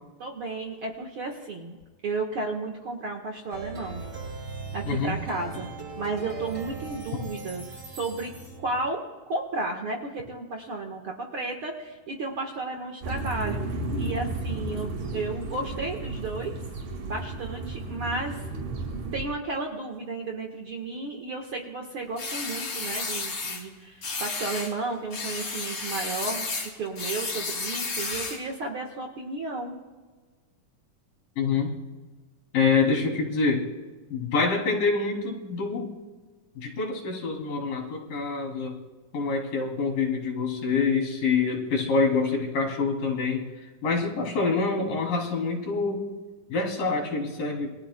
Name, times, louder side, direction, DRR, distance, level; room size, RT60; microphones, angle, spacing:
voice 1, 0.2-1.8 2.0-4.0 4.7-5.7 6.0-8.3 8.6-16.6 17.0-18.4 19.1-26.5 26.7-29.8, right 3 dB, 55° right, 1 dB, 1.7 m, -33 dB
Plucked string instrument, 3.5-8.8, right 4 dB, 35° right, 7.4 m, -39 dB
voice 2, 4.9-5.2 31.4-31.7 32.5-33.7 34.1-35.9 36.6-38.8 39.1-43.4 43.8-46.1 46.5-47.7, left 4 dB, 75° left, -1 dB, 4.5 m, -26 dB
sound 1, 13.0-19.2, right 2 dB, 75° right, 3.6 m, -33 dB
sound 2, 22.2-23.6 24.0-24.7 25.1-28.5, left 3 dB, 45° left, 3.9 m, -32 dB
28.0 x 22.5 x 2.2 m, 1.3 s
omnidirectional pair, 3.9 m